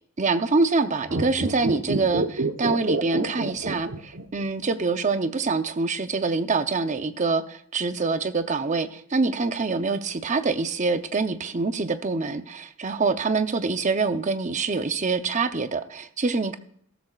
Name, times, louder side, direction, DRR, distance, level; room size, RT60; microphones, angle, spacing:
voice 1, 0.2-16.5, right 4 dB, 35° right, 9 dB, 0.7 m, -25 dB
sound 1, 1.0-4.5 4.7-4.8, right 2 dB, 65° right, 1.0 m, -27 dB
14.5 x 13.0 x 2.4 m, 0.65 s
head